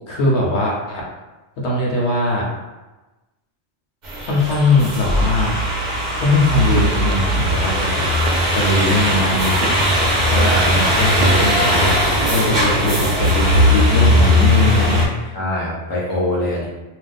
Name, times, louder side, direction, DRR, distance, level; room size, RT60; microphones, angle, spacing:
voice 1, 0.1-1.0 1.6-2.5 4.2-5.5 6.2-9.8 10.3-15.4, left 2 dB, 70° left, -3 dB, 1.0 m, -20 dB
sound 1, 4.0-15.1, equal, 45° right, 0.8 m, -18 dB
sound 2, 6.7-7.1 7.8-7.9 8.3-8.8 9.3-10.1 11.2-11.7, right 2 dB, 75° right, 0.9 m, -29 dB
voice 2, 10.3-10.8 15.3-16.7, left 1 dB, 20° left, -5 dB, 0.7 m, -24 dB
2.5 x 2.2 x 4.0 m, 1.1 s
omnidirectional pair, 1.2 m